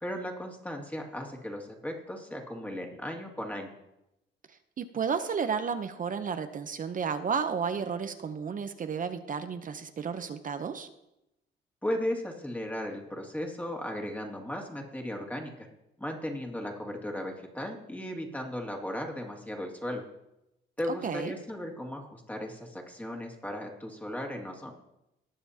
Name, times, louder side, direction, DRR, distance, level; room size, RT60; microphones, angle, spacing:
voice 1, 0.0-3.7 11.8-15.7 16.0-20.0 20.8-24.7, left 1 dB, 10° left, 1 dB, 2.2 m, -36 dB
voice 2, 4.5-10.9 21.0-21.3, right 6 dB, 45° right, 9 dB, 0.8 m, -32 dB
19.5 x 6.9 x 2.9 m, 0.88 s
cardioid pair, 90°, 20 cm